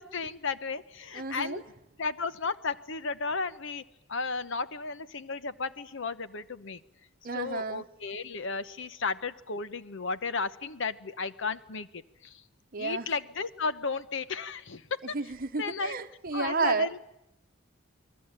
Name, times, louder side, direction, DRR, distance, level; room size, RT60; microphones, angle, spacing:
voice 1, 0.0-1.6 2.0-3.8 4.1-6.8 7.3-12.4 12.8-15.2 15.6-16.0 16.3-17.0, left 4 dB, 65° left, 1.0 m, -34 dB
voice 2, 1.1-1.6 7.2-7.8 12.7-13.1 15.1-16.9, right 4 dB, 45° right, 1.0 m, -31 dB
29.5 x 20.5 x 9.0 m
head